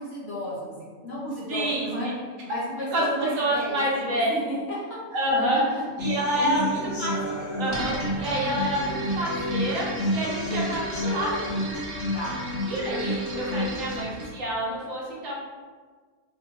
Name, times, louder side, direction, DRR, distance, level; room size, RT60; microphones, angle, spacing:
voice 1, 0.0-5.0 5.5-5.8 6.3-7.0 10.2-10.5 12.1-12.4, equal, 55° left, -6 dB, 1.0 m, -33 dB
voice 2, 1.5-2.1 2.5-2.6 2.9-4.3 5.1-5.6 6.0-7.2 7.6-9.9 10.1-11.6 12.7-15.4, right 1 dB, 65° right, -4 dB, 1.2 m, -28 dB
Human voice / Acoustic guitar, 6.0-14.0, left 1 dB, 75° left, 1.5 m, -30 dB
sound 1, 7.7-14.3, right 1 dB, 50° right, 0.7 m, -37 dB
3.6 x 2.6 x 2.9 m, 1.5 s
omnidirectional pair, 1.5 m